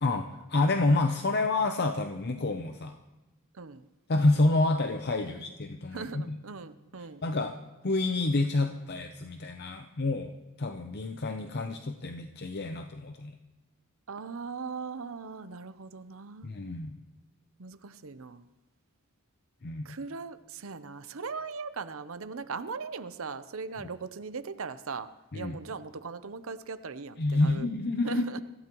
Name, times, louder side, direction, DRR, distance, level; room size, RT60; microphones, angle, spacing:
voice 1, 0.0-3.0 4.1-6.4 7.2-7.6 7.8-10.3 10.6-13.3 16.4-17.0 19.6-20.0 25.3-25.6 27.2-28.4, left 2 dB, 50° left, 6 dB, 0.7 m, -28 dB
voice 2, 3.5-3.9 5.2-5.3 5.9-7.2 14.1-16.5 17.6-18.4 19.8-27.7 28.0-28.4, right 5 dB, 75° right, 12 dB, 0.7 m, -39 dB
25.0 x 15.0 x 3.1 m, 1.0 s
head